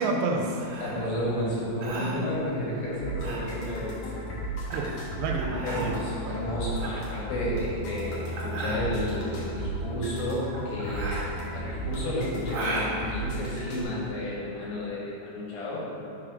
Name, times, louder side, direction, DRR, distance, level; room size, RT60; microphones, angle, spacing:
voice 1, 0.0-0.7 4.7-6.0 6.3-6.4 6.9-7.1, right 3 dB, 85° right, 1 dB, 2.8 m, -29 dB
Dying and gasping sounds - Male Death, 0.6-14.1, right 2 dB, 65° right, 1.7 m, -37 dB
voice 2, 0.8-4.3 5.6-11.2 11.5-15.9, left 1 dB, 70° left, -6 dB, 2.7 m, -32 dB
sound 1, 3.0-13.8, right 1 dB, 90° left, 1.4 m, -35 dB
6.0 x 4.2 x 5.1 m, 2.8 s
omnidirectional pair, 5.0 m